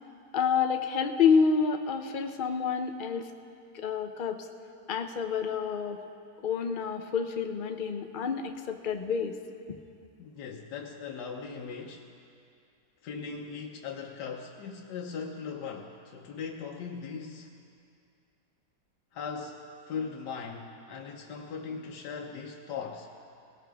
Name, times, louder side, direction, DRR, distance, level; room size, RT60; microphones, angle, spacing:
voice 1, 0.3-3.3 3.7-4.4 4.9-6.0 6.4-9.3, left 6 dB, 50° left, 6 dB, 0.6 m, -28 dB
voice 2, 10.2-12.1 13.0-17.5 19.1-23.1, left 5 dB, 80° left, 1 dB, 1.4 m, -39 dB
19.0 x 17.0 x 3.5 m, 2.5 s
omnidirectional pair, 1.8 m